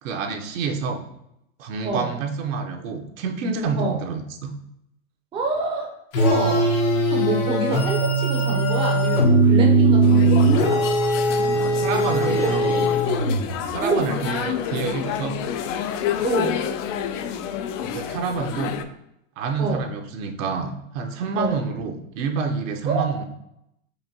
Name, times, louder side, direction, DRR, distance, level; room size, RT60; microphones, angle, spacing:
voice 1, 0.0-1.0 1.6-4.5 11.5-12.9 13.7-15.4 17.8-18.8 19.4-23.2, right 5 dB, 75° right, 4 dB, 0.8 m, -28 dB
voice 2, 5.3-5.9 6.2-6.7 7.1-10.8 12.3-12.5 13.8-14.1 16.2-16.6 19.6-19.9 21.3-21.6 22.9-23.1, right 3 dB, 15° right, 0 dB, 0.5 m, -26 dB
sound 1, 6.1-13.6, right 2 dB, 80° left, 1.1 m, -19 dB
sound 2, 10.0-18.8, left 8 dB, 65° left, 0.5 m, -29 dB
4.9 x 2.6 x 2.7 m, 0.80 s
supercardioid pair, 130°, 40 cm